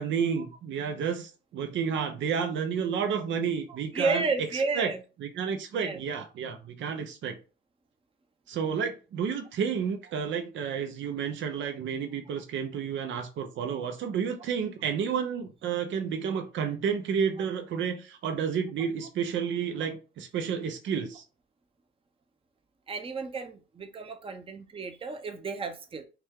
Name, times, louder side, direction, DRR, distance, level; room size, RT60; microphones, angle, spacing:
voice 1, 0.0-4.3 4.5-4.9 5.2-7.4 8.5-21.2, right 7 dB, 70° right, 0.7 m, -31 dB
voice 2, 3.7-5.0 5.7-6.0 22.9-26.0, right 4 dB, 25° right, 0.7 m, -32 dB
5.8 x 2.3 x 3.7 m
cardioid pair, 90°, 20 cm